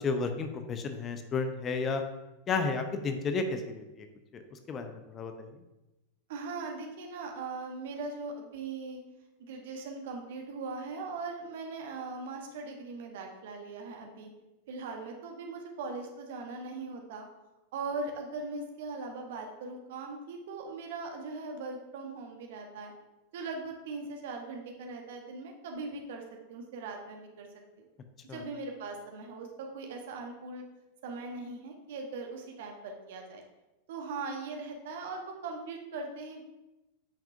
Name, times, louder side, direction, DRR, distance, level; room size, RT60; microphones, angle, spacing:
voice 1, 0.0-2.0 2.5-4.1 4.3-4.4 4.7-5.5 28.3-28.4, left 4 dB, 25° left, 7 dB, 0.6 m, -32 dB
voice 2, 6.3-9.0 9.4-14.3 14.7-17.3 17.7-22.9 23.3-26.2 26.5-27.5 27.8-27.9 28.3-30.6 31.0-33.4 33.9-36.4, right 3 dB, 55° right, 3 dB, 1.1 m, -40 dB
8.5 x 5.8 x 2.6 m, 1.0 s
figure-of-eight pair, 90°, 0 cm